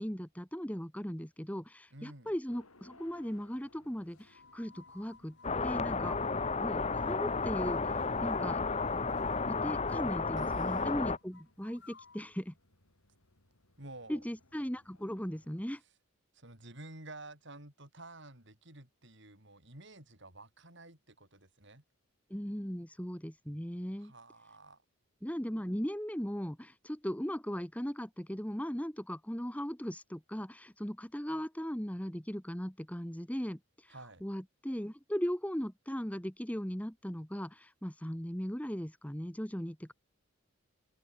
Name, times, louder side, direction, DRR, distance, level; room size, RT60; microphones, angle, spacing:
voice 1, 0.0-5.4 5.6-6.2 6.6-8.6 9.5-12.5 14.1-15.8 22.3-24.1 25.2-33.9 34.2-39.9, equal, 5° left, 1.5 m, -38 dB
voice 2, 1.9-2.3 10.4-10.9 13.8-14.2 16.3-21.8 24.0-24.8 33.9-34.2, right 2 dB, 55° right, 6.4 m, -51 dB
sound 1, 2.5-15.7, left 2 dB, 75° left, 6.7 m, -64 dB
sound 2, 4.2-12.4, left 4 dB, 50° left, 2.8 m, -58 dB
sound 3, 5.4-11.2, left 4 dB, 30° left, 1.0 m, -32 dB
open air
head